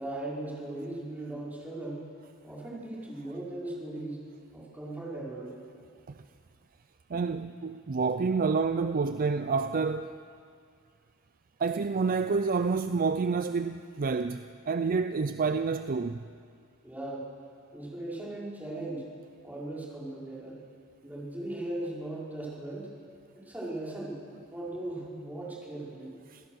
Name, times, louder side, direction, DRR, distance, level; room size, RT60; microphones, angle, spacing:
voice 1, 0.0-2.0 2.4-4.2 4.5-5.6 16.8-17.3 17.7-19.1 19.4-20.6 21.0-22.9 23.3-24.1 24.5-26.1, right 1 dB, 10° right, 5.1 m, -38 dB
voice 2, 7.1-10.2 11.6-16.3 26.3-26.4, right 4 dB, 40° right, 0.5 m, -28 dB
27.0 x 16.5 x 6.4 m
head